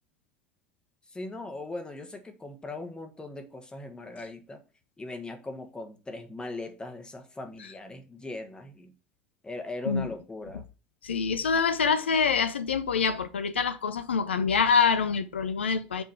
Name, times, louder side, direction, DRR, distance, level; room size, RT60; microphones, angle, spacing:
voice 1, 1.1-4.6 5.0-8.9 9.4-10.6, left 2 dB, 15° left, 1.3 m, -39 dB
voice 2, 11.0-16.0, left 5 dB, 75° left, 0.4 m, -25 dB
5.0 x 3.9 x 5.9 m
figure-of-eight pair, 65°, 6 cm